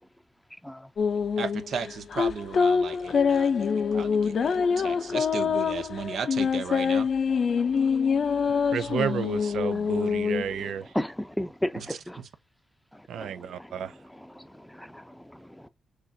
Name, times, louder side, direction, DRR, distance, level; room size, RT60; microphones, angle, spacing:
sound 1, 1.0-10.7, left 6 dB, 55° left, 0.5 m, -25 dB
voice 1, 1.4-7.1 11.8-12.3, right 6 dB, 70° right, 0.8 m, -36 dB
voice 2, 7.3-8.1 8.5-8.7 10.9-12.2 13.2-13.7 14.4-14.5 14.7-15.7, left 1 dB, 5° left, 0.6 m, -35 dB
voice 3, 8.7-11.0 13.1-14.0, right 8 dB, 90° right, 0.4 m, -31 dB
6.6 x 2.5 x 2.7 m
cardioid pair, 105°, 0 cm